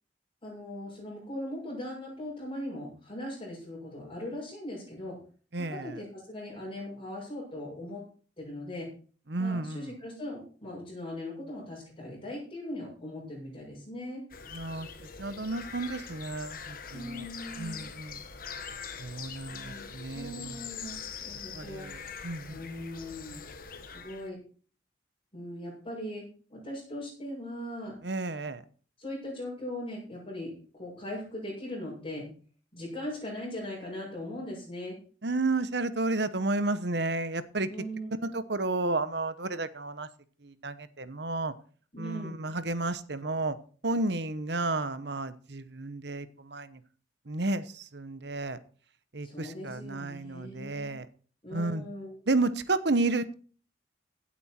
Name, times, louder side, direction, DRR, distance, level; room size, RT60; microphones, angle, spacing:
voice 1, 0.4-5.2 5.6-8.0 8.4-8.9 9.4-14.2 16.9-17.9 19.5-19.9 20.1-21.9 22.5-23.4 23.9-24.4 25.3-28.0 29.0-32.3 32.7-35.0 37.7-38.1 41.9-42.4 49.2-51.0 51.4-52.2, left 1 dB, 30° left, -7 dB, 6.9 m, -39 dB
voice 2, 5.5-6.0 9.3-10.0 14.5-14.9 15.2-17.3 17.6-18.2 19.0-20.7 21.5-22.6 28.0-28.6 35.2-37.7 38.2-40.1 40.4-41.5 42.0-43.6 43.8-46.8 47.3-48.6 49.1-51.1 51.5-51.9 52.3-53.3, right 2 dB, 65° right, 14 dB, 1.1 m, -32 dB
sound 1, 14.3-24.3, left 6 dB, 50° left, 1.3 m, -43 dB
16.5 x 8.8 x 4.4 m, 0.41 s
head